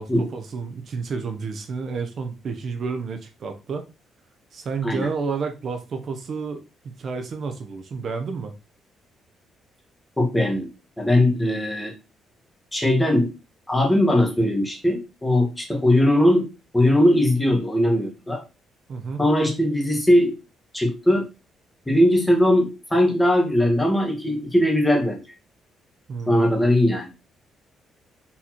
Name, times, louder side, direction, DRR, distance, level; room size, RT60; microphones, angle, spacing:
voice 1, 0.0-3.8 4.5-8.5 18.9-19.2 26.1-26.5, right 5 dB, 55° right, 6 dB, 0.7 m, -30 dB
voice 2, 10.2-10.7 11.0-11.9 12.7-13.3 13.7-16.5 16.7-18.4 19.2-20.3 20.7-21.3 21.9-25.2 26.3-27.1, left 1 dB, 10° left, 1 dB, 1.5 m, -19 dB
4.2 x 3.9 x 2.9 m, 0.29 s
cardioid pair, 90°, 0 cm